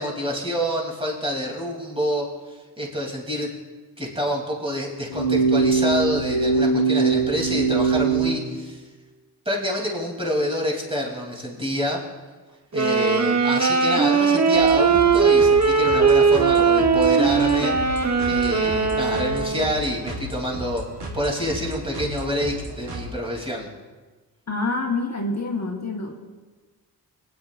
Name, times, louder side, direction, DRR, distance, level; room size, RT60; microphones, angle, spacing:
voice 1, 0.0-3.5 4.0-8.8 9.4-12.0 12.7-17.7 18.2-20.8 21.1-23.7, equal, 15° right, -2 dB, 3.1 m, -27 dB
sound 1, 5.1-8.3, right 4 dB, 85° left, 1.4 m, -21 dB
sound 2, 12.7-19.8, right 5 dB, 40° right, 1.2 m, -19 dB
sound 3, 14.5-23.1, equal, 80° right, 1.8 m, -35 dB
voice 2, 24.5-26.1, left 3 dB, 40° left, 0 dB, 1.4 m, -26 dB
20.5 x 9.5 x 2.5 m, 1.3 s
cardioid pair, 50°, 40 cm